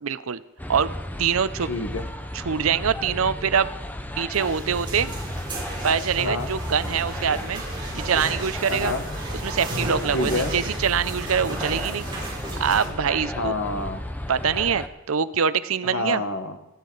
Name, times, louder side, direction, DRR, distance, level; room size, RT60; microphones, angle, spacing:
voice 1, 0.0-0.4 0.7-0.9 1.2-1.7 2.3-3.7 4.2-5.1 5.8-7.6 7.9-8.9 9.4-12.1 12.6-13.5 14.3-16.2, right 7 dB, 85° right, 15 dB, 0.6 m, -24 dB
sound 1, 0.6-14.9, left 1 dB, 10° left, 0.7 m, -34 dB
voice 2, 1.7-2.0 6.2-6.5 8.7-9.0 10.1-10.5 13.3-14.0 15.9-16.6, left 2 dB, 75° left, 7 dB, 1.5 m, -27 dB
sound 2, 4.3-12.9, right 1 dB, 25° right, 5.3 m, -34 dB
25.5 x 10.0 x 4.0 m, 0.99 s
head